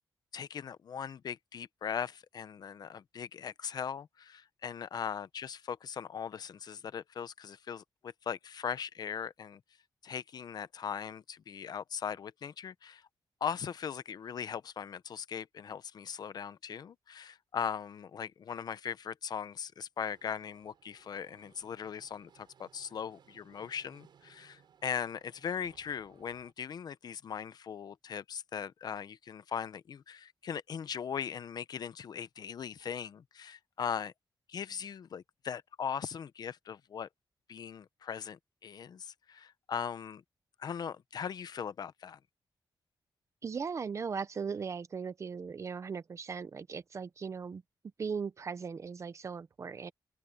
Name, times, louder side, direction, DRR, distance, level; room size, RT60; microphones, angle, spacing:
voice 1, 0.3-9.6 10.0-13.0 13.4-34.1 34.5-37.1 37.5-40.2 40.6-42.2, left 7 dB, 55° left, 0.7 m, -39 dB
sound 1, 20.1-26.5, right 8 dB, 70° right, 5.4 m, -64 dB
voice 2, 43.4-47.6 48.0-49.9, right 5 dB, 35° right, 0.7 m, -38 dB
open air
wide cardioid pair, 165°, 8 cm